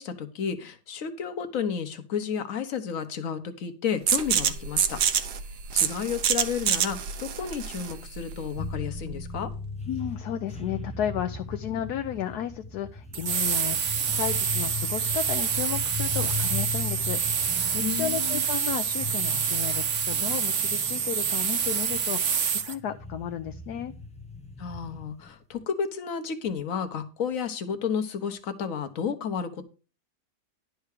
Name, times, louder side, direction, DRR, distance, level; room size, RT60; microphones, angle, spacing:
voice 1, 0.0-5.0 5.7-9.5 17.8-18.4 24.6-29.6, left 7 dB, 55° left, 8 dB, 1.4 m, -32 dB
sound 1, 4.1-9.6, right 8 dB, 75° right, 1.5 m, -27 dB
sound 2, 8.6-25.4, left 4 dB, 10° left, 0.5 m, -38 dB
voice 2, 9.9-17.2 17.5-23.9, left 10 dB, 70° left, 8 dB, 1.2 m, -33 dB
sound 3, 13.1-22.7, right 7 dB, 55° right, 1.0 m, -27 dB
11.0 x 4.7 x 6.5 m, 0.34 s
omnidirectional pair, 1.8 m